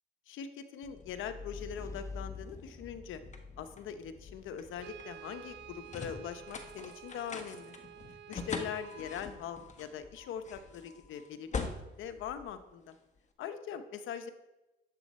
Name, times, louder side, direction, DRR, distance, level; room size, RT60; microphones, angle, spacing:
voice 1, 0.3-3.2 3.6-7.7 8.3-11.6 12.0-12.9 13.4-14.3, left 8 dB, 85° left, 10 dB, 0.8 m, -42 dB
sound 1, 0.8-13.2, left 4 dB, 35° left, 1.2 m, -44 dB
sound 2, 1.3-4.3, left 3 dB, 15° left, 0.4 m, -56 dB
Brass instrument, 4.8-9.4, right 10 dB, 65° right, 0.4 m, -51 dB
10.5 x 7.6 x 4.2 m, 1.0 s
cardioid pair, 90°, 20 cm